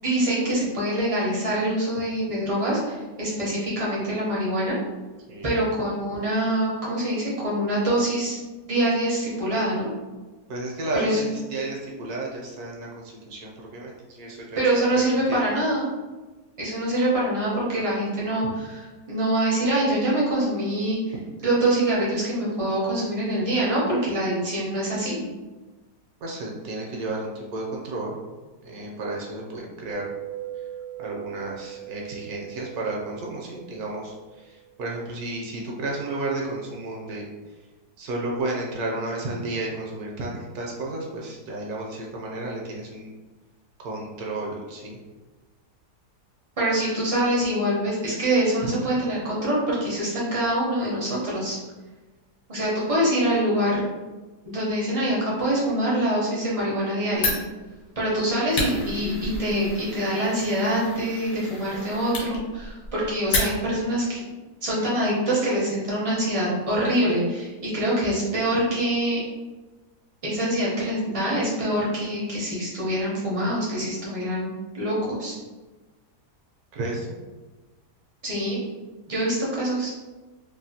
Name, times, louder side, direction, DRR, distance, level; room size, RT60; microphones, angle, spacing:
voice 1, 0.0-4.7 5.4-8.4 8.6-9.9 10.9-11.3 14.6-15.8 16.6-21.0 21.4-25.2 46.6-51.6 52.5-53.8 54.4-57.4 58.0-64.2 64.6-69.2 70.2-75.3 78.2-78.6 79.1-79.9, right 1 dB, 50° right, -6 dB, 0.4 m, -25 dB
voice 2, 5.3-5.6 10.5-14.9 15.3-15.4 26.2-28.2 28.6-30.1 31.0-37.3 38.0-43.1 43.8-45.0 48.6-48.7 76.7-77.2, right 2 dB, 75° right, -2 dB, 1.1 m, -32 dB
sound 1, 29.9-34.3, right 11 dB, 45° left, 0.6 m, -39 dB
Fire, 57.1-63.9, left 2 dB, 65° left, 1.1 m, -32 dB
2.9 x 2.2 x 2.7 m, 1.2 s
omnidirectional pair, 1.7 m